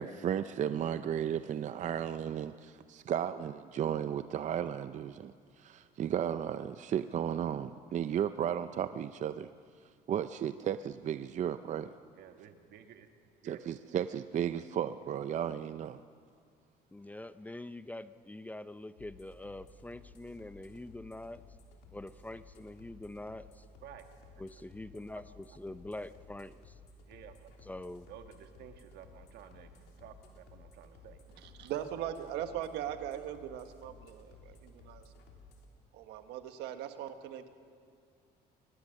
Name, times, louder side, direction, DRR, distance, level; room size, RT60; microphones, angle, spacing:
voice 1, 0.0-9.5 10.1-11.9 13.4-16.0, right 9 dB, 45° right, 11 dB, 0.5 m, -34 dB
voice 2, 12.1-13.1 13.4-13.6 23.8-24.0 27.1-27.5 28.1-29.7 30.0-31.2, right 10 dB, 75° right, 6 dB, 1.8 m, -52 dB
voice 3, 16.9-21.4 21.9-23.6 24.4-26.5 27.7-28.1, left 1 dB, 10° left, 13 dB, 0.5 m, -44 dB
sound 1, 19.0-35.7, left 3 dB, 80° left, 3.3 m, -56 dB
voice 4, 31.4-35.0 35.9-37.5, right 10 dB, 90° right, 8 dB, 1.4 m, -40 dB
23.0 x 18.5 x 6.5 m, 2.2 s
cardioid pair, 110°, 17 cm